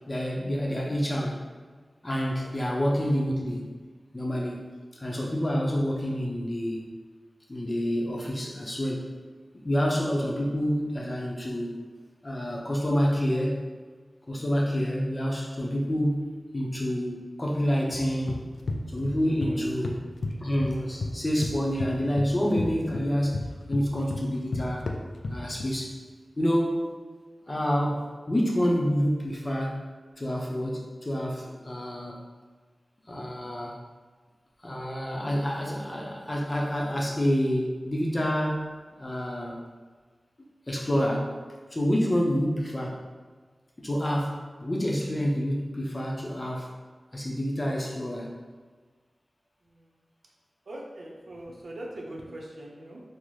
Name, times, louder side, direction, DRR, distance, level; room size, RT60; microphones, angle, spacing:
voice 1, 0.1-1.5 2.0-3.7 4.1-6.9 7.5-9.1 9.6-11.8 12.2-13.6 14.3-18.4 18.9-20.0 20.4-24.9 25.3-26.0 26.4-26.9 27.5-29.9 30.2-32.2 33.1-33.7 34.6-39.6 40.7-41.4 41.7-43.0 43.8-46.7 47.1-48.3, equal, 30° left, -2 dB, 0.6 m, -28 dB
sound 1, 17.9-19.5 19.8-21.1 21.4-25.7, left 2 dB, 85° left, 0.3 m, -33 dB
voice 2, 50.7-53.0, right 1 dB, 80° right, -2 dB, 0.6 m, -42 dB
3.9 x 2.0 x 3.1 m, 1.4 s
wide cardioid pair, 70°, 0 cm